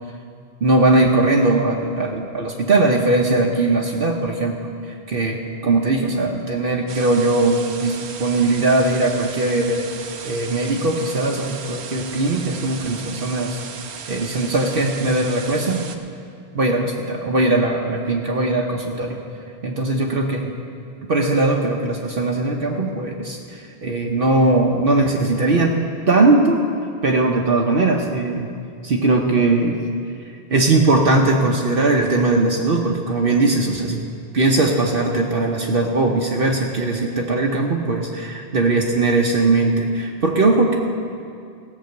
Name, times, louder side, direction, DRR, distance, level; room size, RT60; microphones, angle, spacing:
voice 1, 0.6-4.6 5.1-9.8 10.2-13.6 14.1-15.9 16.5-19.2 19.6-20.5 21.1-25.8 26.1-26.6 27.0-28.5 28.8-29.8 30.5-34.0 34.3-40.8, right 2 dB, 60° right, 0 dB, 1.0 m, -19 dB
sound 1, 6.9-16.0, right 6 dB, 85° right, 1.1 m, -36 dB
17.0 x 6.0 x 7.9 m, 2.3 s
omnidirectional pair, 1.1 m